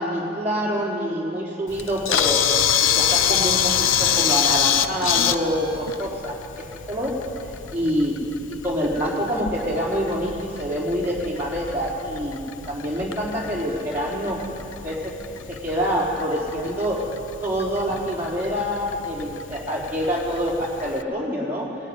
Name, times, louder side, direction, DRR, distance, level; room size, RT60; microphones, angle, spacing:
voice 1, 0.0-2.5 2.8-7.2 7.7-8.2 8.5-12.4 12.7-14.4 14.8-15.2 15.5-17.1 17.4-21.8, equal, 10° right, -5 dB, 3.9 m, -26 dB
Camera, 1.7-21.0, left 9 dB, 70° left, 0.7 m, -27 dB
20.5 x 14.5 x 9.8 m, 2.8 s
head